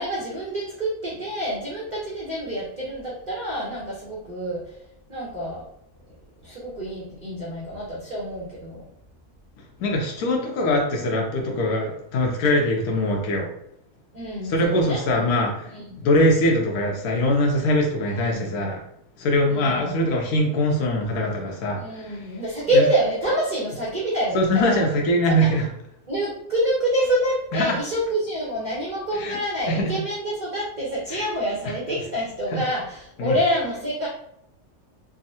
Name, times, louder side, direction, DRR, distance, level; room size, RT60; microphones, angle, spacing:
voice 1, 0.0-4.7 5.1-5.6 6.4-8.8 14.1-15.0 15.7-16.0 18.1-18.6 19.5-19.9 21.8-24.8 25.3-25.5 26.1-34.1, equal, 50° right, -5 dB, 0.5 m, -27 dB
voice 2, 9.8-13.5 14.4-15.7 16.0-18.8 19.2-22.2 22.7-22.8 24.3-25.7 27.5-27.8 29.1-29.4 29.7-29.9 31.1-31.2 32.5-32.6 33.2-33.3, left 1 dB, 75° left, 0 dB, 1.0 m, -22 dB
3.5 x 2.0 x 2.7 m, 0.78 s
omnidirectional pair, 1.6 m